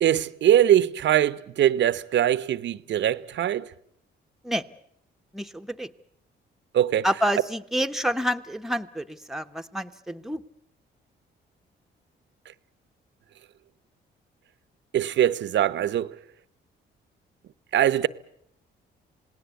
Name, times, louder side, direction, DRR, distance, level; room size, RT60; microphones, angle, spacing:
voice 1, 0.0-3.7 6.7-7.1 14.9-16.2 17.7-18.1, right 11 dB, 65° right, 0.9 m, -22 dB
voice 2, 5.3-5.9 7.0-10.4, equal, ahead, 1.1 m, -28 dB
27.5 x 18.5 x 8.2 m
cardioid pair, 90°, 20 cm